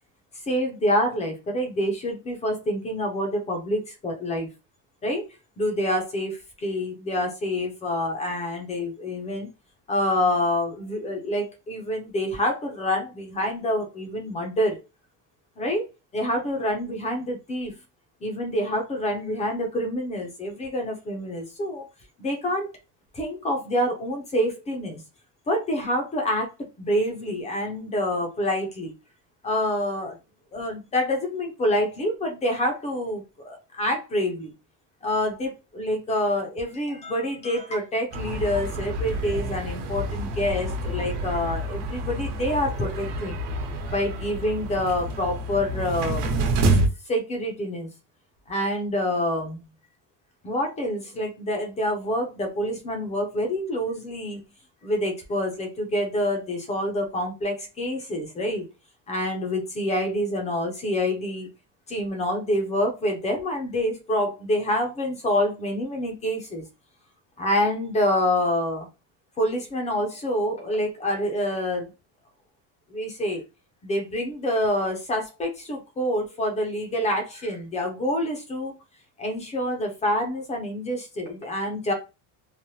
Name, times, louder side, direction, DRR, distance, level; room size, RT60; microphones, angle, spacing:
voice 1, 0.5-4.5 5.0-5.2 5.6-9.5 9.9-14.8 15.6-15.8 16.1-17.7 18.2-21.8 22.2-22.7 23.1-25.0 25.5-26.5 26.8-28.9 29.4-30.2 30.5-34.5 35.0-43.4 43.9-46.3 46.7-46.8 47.1-47.9 48.5-49.6 50.4-54.4 54.8-58.6 59.1-61.5 61.9-66.7 67.4-68.9 69.4-71.9 72.9-73.4 73.8-78.8 79.2-81.9, left 1 dB, 15° left, 3 dB, 0.4 m, -27 dB
sound 1, 38.1-46.9, right 1 dB, 80° right, 1.1 m, -28 dB
3.1 x 2.0 x 2.7 m, 0.27 s
cardioid pair, 170°, 47 cm